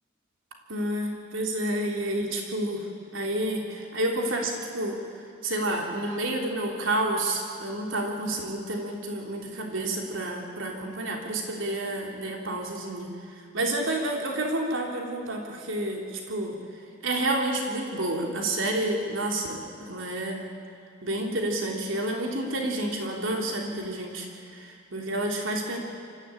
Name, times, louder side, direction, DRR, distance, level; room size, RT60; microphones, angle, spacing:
voice 1, 0.7-2.8 3.1-5.0 5.4-13.1 13.5-16.5 17.0-20.4 21.0-24.3 24.5-25.8, right 1 dB, 80° right, 1 dB, 3.4 m, -29 dB
25.0 x 14.5 x 9.0 m, 2.4 s
head